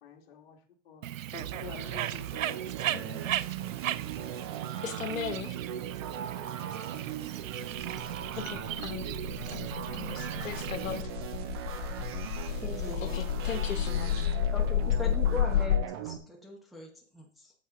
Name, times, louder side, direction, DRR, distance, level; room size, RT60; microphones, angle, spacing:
voice 1, 0.0-2.6, left 6 dB, 50° left, 1.9 m, -48 dB
Bird, 1.0-11.0, right 12 dB, 85° right, 0.5 m, -37 dB
sound 1, 1.4-16.2, right 9 dB, 20° right, 0.5 m, -39 dB
voice 2, 2.9-3.5 4.8-5.6 8.4-9.1 9.5-11.1 12.5-12.6 12.9-14.3, left 7 dB, 90° left, 1.1 m, -39 dB
sound 2, 7.8-15.8, left 10 dB, 70° left, 0.6 m, -31 dB
voice 3, 12.6-13.2 14.5-17.5, left 1 dB, ahead, 0.9 m, -40 dB
8.4 x 7.6 x 3.7 m
hypercardioid pair, 150°, 38 cm